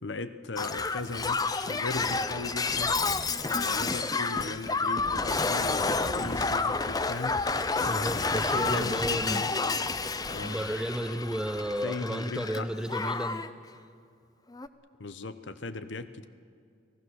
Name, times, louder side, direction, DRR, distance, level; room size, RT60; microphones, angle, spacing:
voice 1, 0.0-3.0 3.5-7.4 7.8-9.5 10.3-10.7 11.8-12.7 15.0-16.3, left 3 dB, 65° left, 11 dB, 0.9 m, -38 dB
Shatter, 0.6-12.6 12.9-13.5 14.5-14.7, left 4 dB, 20° left, 0.6 m, -30 dB
sound 1, 0.7-11.6, left 1 dB, 50° left, 4.6 m, -53 dB
voice 2, 7.9-9.5 10.4-13.5, equal, 5° right, 9 dB, 0.9 m, -32 dB
29.0 x 18.0 x 6.5 m, 2.4 s
head